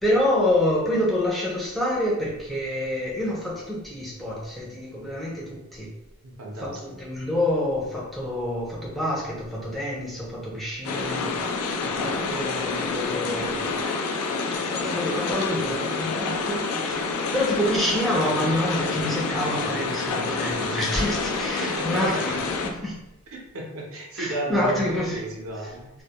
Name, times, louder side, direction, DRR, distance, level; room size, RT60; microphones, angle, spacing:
voice 1, 0.0-5.9 6.6-13.7 14.7-22.3 22.8-23.0 24.2-25.2, left 1 dB, ahead, -6 dB, 0.4 m, -27 dB
voice 2, 6.2-7.0 21.3-21.4 21.6-22.4 23.3-25.9, right 2 dB, 65° right, -1 dB, 0.6 m, -33 dB
sound 1, 10.8-22.7, left 4 dB, 85° left, 0.3 m, -28 dB
2.1 x 2.1 x 2.8 m, 0.92 s
head